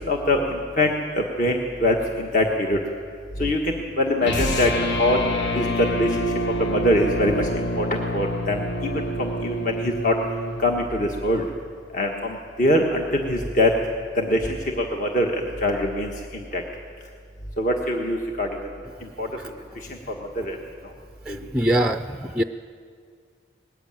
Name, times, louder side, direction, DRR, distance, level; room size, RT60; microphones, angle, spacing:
voice 1, 0.0-2.8 3.4-5.2 5.5-5.6 6.0-6.1 6.6-7.9 8.1-10.1 10.6-11.4 11.9-13.7 14.2-16.6 17.6-18.5 19.2-19.3 20.4-20.6 21.3-21.4, left 1 dB, 45° left, 1 dB, 1.5 m, -23 dB
sound 1, 4.2-10.6, equal, 80° left, 1.6 m, -27 dB
voice 2, 21.3-22.4, right 1 dB, 5° right, 7 dB, 0.4 m, -23 dB
19.5 x 14.5 x 9.0 m, 2.2 s
head